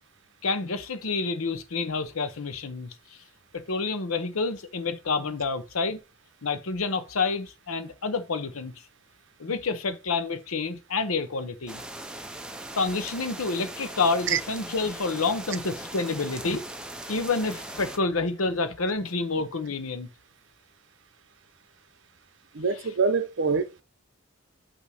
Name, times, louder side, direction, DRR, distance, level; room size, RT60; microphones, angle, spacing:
voice 1, 0.4-2.9 3.5-6.0 6.4-8.8 9.4-11.8 12.8-16.6 17.1-20.1, left 4 dB, 85° left, 0.8 m, -28 dB
sound 1, 11.7-18.0, right 1 dB, 5° right, 0.5 m, -39 dB
voice 2, 22.5-23.8, right 5 dB, 60° right, 0.6 m, -25 dB
8.3 x 2.8 x 4.8 m
head